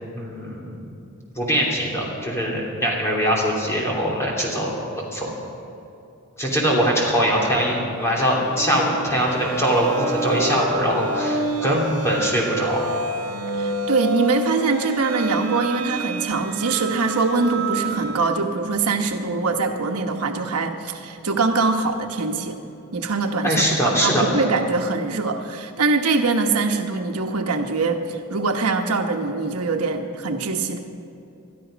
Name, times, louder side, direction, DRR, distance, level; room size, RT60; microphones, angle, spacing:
voice 1, 0.1-0.7 1.3-5.3 6.4-12.9 23.4-24.4, equal, 10° left, -3 dB, 3.1 m, -22 dB
sound 1, 8.1-18.3, right 2 dB, 70° right, 2.3 m, -29 dB
voice 2, 13.6-22.6 22.9-30.8, right 3 dB, 90° right, 4 dB, 1.1 m, -23 dB
21.0 x 13.0 x 5.1 m, 2.7 s
head